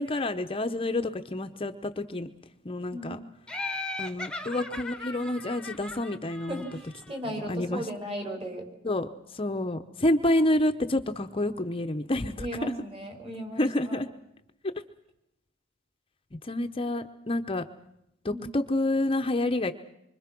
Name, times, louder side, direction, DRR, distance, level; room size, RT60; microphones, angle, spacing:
voice 1, 0.0-2.3 2.6-3.2 4.0-6.6 7.5-7.8 8.8-12.3 12.6-12.7 13.6-14.1 16.4-17.7 18.2-19.7, left 1 dB, 30° left, 8 dB, 0.9 m, -28 dB
Laughter, 3.5-7.1, left 2 dB, 5° left, 1.3 m, -38 dB
voice 2, 6.5-8.7 12.4-14.0 18.3-18.5, right 1 dB, 30° right, 4 dB, 5.3 m, -36 dB
26.0 x 25.0 x 6.1 m, 0.82 s
head